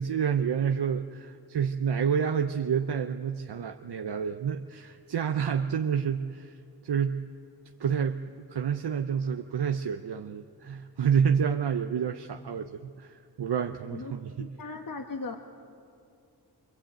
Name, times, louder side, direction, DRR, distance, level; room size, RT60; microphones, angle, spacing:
voice 1, 0.0-6.6 6.8-7.3 7.8-14.5, right 7 dB, 70° right, 6 dB, 0.8 m, -29 dB
voice 2, 13.9-15.5, left 3 dB, 50° left, 4 dB, 1.5 m, -38 dB
25.5 x 23.0 x 9.0 m, 2.5 s
cardioid pair, 45°, 41 cm